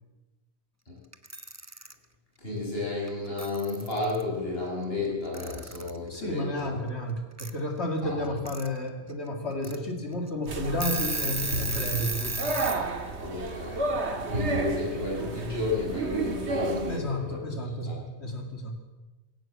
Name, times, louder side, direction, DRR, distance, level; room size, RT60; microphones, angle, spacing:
Alarm / Clock, 1.1-1.9 3.1-3.2 3.4-4.2 5.3-6.0 7.4-7.5 8.2-8.7 9.1-9.2 9.6-9.8 10.3-10.4 10.7-12.8, right 2 dB, 15° right, 1.0 m, -33 dB
voice 1, 2.4-6.7 8.0-8.2 13.2-13.9 14.3-17.4 17.8-17.9, left 2 dB, 60° left, -4 dB, 6.8 m, -32 dB
voice 2, 6.1-12.6 16.9-18.8, left 1 dB, 75° left, 3 dB, 2.8 m, -32 dB
sound 1, 10.5-17.0, right 2 dB, 80° right, 2.1 m, -32 dB
22.0 x 17.0 x 7.7 m, 1.1 s
omnidirectional pair, 1.1 m